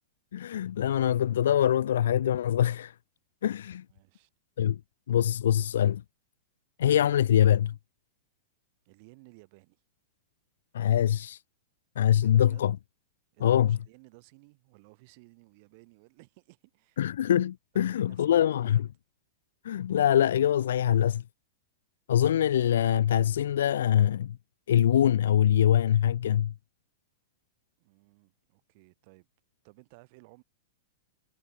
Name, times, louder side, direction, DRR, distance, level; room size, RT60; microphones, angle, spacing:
voice 1, 0.3-2.9 3.4-3.8 4.6-4.8 5.1-6.0 6.8-7.8 10.7-11.4 12.0-12.7 13.4-13.8 17.0-18.8 19.6-21.2 22.1-24.4 24.7-26.5, left 10 dB, 80° left, 0.4 m, -24 dB
voice 2, 3.9-4.3 8.8-9.8 12.2-12.6 13.3-17.0 17.7-18.8 27.8-29.3 29.6-30.4, right 28 dB, 35° right, 4.8 m, -56 dB
supercardioid pair, 175°, 0 cm